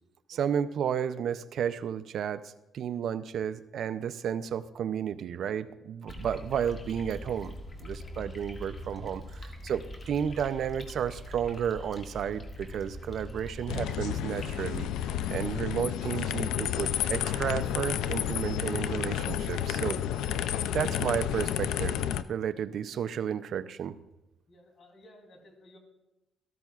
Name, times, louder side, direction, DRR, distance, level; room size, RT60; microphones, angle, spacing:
voice 1, 0.3-7.5 7.8-20.0 20.7-22.0 22.3-24.0, right 8 dB, 65° right, 13 dB, 0.5 m, -32 dB
sound 1, 6.1-14.9, left 1 dB, 35° left, 1.8 m, -43 dB
sound 2, 13.7-22.2, left 10 dB, 90° left, 0.4 m, -31 dB
voice 2, 24.5-25.8, left 1 dB, 50° left, 1 dB, 3.0 m, -56 dB
14.0 x 13.5 x 2.4 m, 0.98 s
cardioid pair, 90°, 0 cm